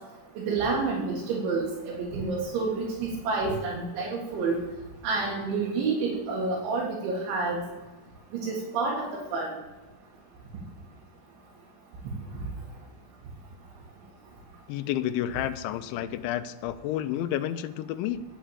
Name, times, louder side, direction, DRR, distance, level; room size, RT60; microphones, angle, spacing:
voice 1, 0.4-4.6 5.0-7.6 8.3-9.5, right 4 dB, 80° right, -3 dB, 4.3 m, -29 dB
voice 2, 14.7-18.2, left 11 dB, 90° left, 9 dB, 3.0 m, -30 dB
10.0 x 8.5 x 7.4 m, 1.2 s
omnidirectional pair, 5.3 m